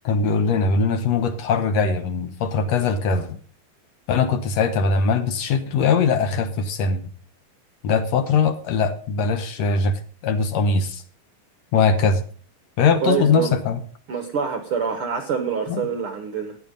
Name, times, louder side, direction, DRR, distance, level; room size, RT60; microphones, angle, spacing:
voice 1, 0.0-3.4 4.1-7.0 7.8-9.9 10.2-11.0 11.7-12.2 12.8-13.8 15.7-15.8, left 5 dB, 65° left, 10 dB, 1.8 m, -21 dB
voice 2, 13.0-13.5 14.1-16.6, right 6 dB, 65° right, 7 dB, 1.4 m, -25 dB
14.5 x 10.0 x 5.3 m, 0.43 s
omnidirectional pair, 4.0 m